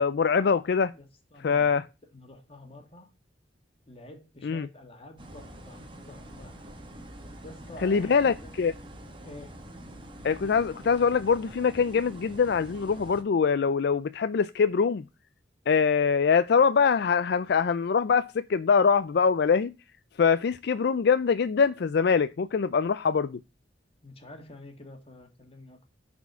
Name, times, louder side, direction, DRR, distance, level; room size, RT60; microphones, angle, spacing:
voice 1, 0.0-0.9 1.4-1.8 4.4-4.7 7.8-8.7 10.2-15.0 15.7-19.7 20.2-23.4, left 6 dB, 65° left, 0.4 m, -23 dB
voice 2, 0.9-1.8 2.1-3.1 3.9-6.6 7.4-8.5 9.1-9.6 24.0-25.9, left 1 dB, 35° left, 2.0 m, -48 dB
sound 1, 5.2-13.2, right 1 dB, 30° right, 1.6 m, -45 dB
10.5 x 4.5 x 5.6 m
head